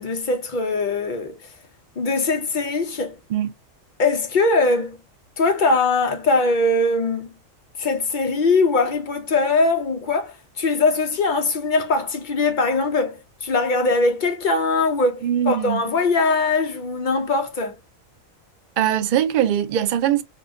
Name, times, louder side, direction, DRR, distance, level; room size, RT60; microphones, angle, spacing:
voice 1, 0.0-1.4 2.0-3.2 4.0-5.0 5.4-7.3 7.8-17.7, left 3 dB, 55° left, 0.5 m, -21 dB
voice 2, 15.2-15.8 18.8-20.2, right 10 dB, 75° right, 0.4 m, -21 dB
2.8 x 2.3 x 3.5 m
omnidirectional pair, 1.4 m